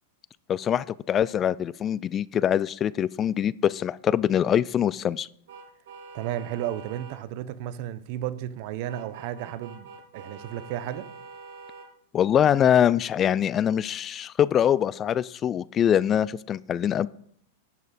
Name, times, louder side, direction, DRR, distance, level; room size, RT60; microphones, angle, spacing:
voice 1, 0.5-5.3 12.1-17.1, left 9 dB, 30° left, 0.3 m, -23 dB
sound 1, 5.5-7.2 8.9-11.9, right 4 dB, 70° right, 3.4 m, -45 dB
voice 2, 6.1-9.9 10.1-11.1, right 12 dB, 55° right, 0.7 m, -33 dB
11.0 x 7.3 x 4.2 m
hypercardioid pair, 120°, 0 cm